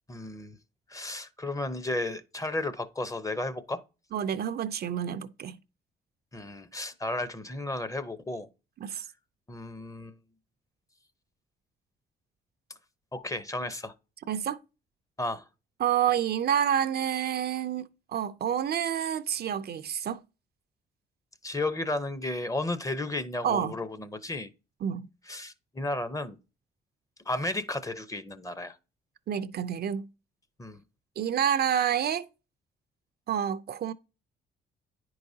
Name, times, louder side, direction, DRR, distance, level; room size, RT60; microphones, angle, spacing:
voice 1, 0.1-0.6 0.9-3.8 6.3-8.5 8.9-9.0 9.5-10.2 13.1-13.9 15.2-15.5 21.4-24.5 25.3-26.4 27.3-28.8 30.6-30.8, left 2 dB, 15° left, 0.7 m, -33 dB
voice 2, 4.1-5.6 8.8-9.1 14.3-14.6 15.8-20.2 23.4-23.8 24.8-25.1 29.3-30.1 31.2-32.3 33.3-33.9, right 9 dB, 55° right, 0.5 m, -28 dB
9.7 x 4.7 x 2.7 m
cardioid pair, 90°, 20 cm